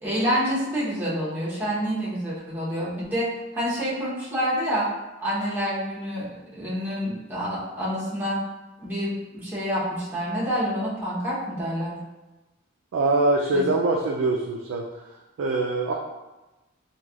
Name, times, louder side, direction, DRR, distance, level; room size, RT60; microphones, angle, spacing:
voice 1, 0.0-4.9 5.2-8.4 8.8-12.0 13.5-13.6, equal, 10° right, -9 dB, 0.9 m, -28 dB
voice 2, 12.9-14.8 15.4-15.9, right 2 dB, 70° right, -1 dB, 0.3 m, -23 dB
3.2 x 2.3 x 2.3 m, 1.1 s
head